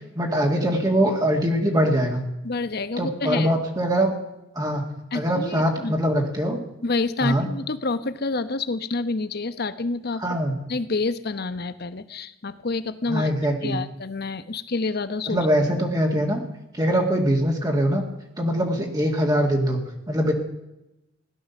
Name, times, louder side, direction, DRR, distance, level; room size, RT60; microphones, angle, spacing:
voice 1, 0.2-2.2 3.0-4.1 4.6-4.8 5.1-6.6 7.2-7.5 10.2-10.5 13.1-13.8 15.3-16.4 16.7-18.0 18.4-19.8 20.1-20.3, equal, 20° right, 1 dB, 2.1 m, -22 dB
voice 2, 2.4-3.5 5.1-6.0 6.8-10.4 10.7-13.3 13.6-15.5, left 3 dB, 55° left, 13 dB, 0.9 m, -28 dB
16.5 x 11.5 x 7.1 m, 0.90 s
head